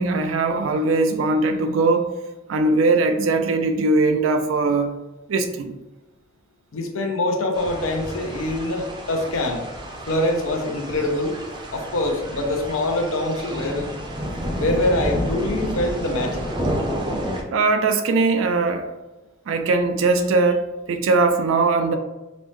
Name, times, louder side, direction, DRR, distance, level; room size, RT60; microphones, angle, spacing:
voice 1, 0.0-2.1 2.5-4.9 5.3-5.7 17.5-18.9 19.5-22.0, right 3 dB, 75° right, 6 dB, 0.4 m, -20 dB
voice 2, 6.7-9.6 10.1-11.4 11.7-13.9 14.6-16.4, left 1 dB, 85° left, 3 dB, 0.6 m, -24 dB
sound 1, 7.5-17.4, equal, 20° right, 0.5 m, -30 dB
5.1 x 2.1 x 3.1 m, 1.1 s
head